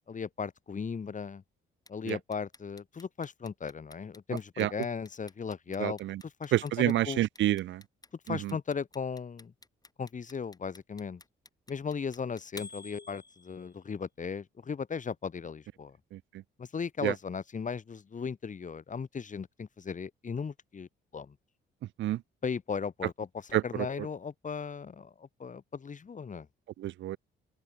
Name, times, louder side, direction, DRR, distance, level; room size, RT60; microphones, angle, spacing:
voice 1, 0.1-1.4 1.9-7.3 8.3-9.5 10.0-11.2 11.7-16.0 16.6-21.4 22.4-26.5, left 6 dB, 40° left, 4.2 m, -37 dB
Clock, 1.9-13.8, left 2 dB, 20° left, 7.7 m, -51 dB
voice 2, 5.8-6.2 6.5-7.8 8.3-8.5 16.1-16.2 17.0-17.1 22.0-22.2 23.5-23.6 26.8-27.2, right 14 dB, 70° right, 0.6 m, -28 dB
open air
cardioid pair, 90°, 20 cm